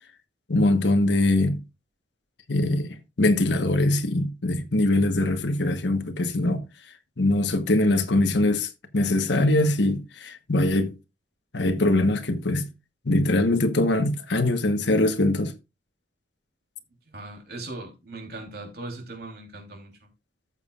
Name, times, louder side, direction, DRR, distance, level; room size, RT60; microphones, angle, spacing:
voice 1, 0.5-1.6 2.5-6.6 7.2-10.9 11.5-12.7 13.0-15.5, left 2 dB, 70° left, 1.2 m, -22 dB
voice 2, 17.1-19.9, right 2 dB, 55° right, 3.3 m, -39 dB
14.0 x 7.1 x 2.4 m
head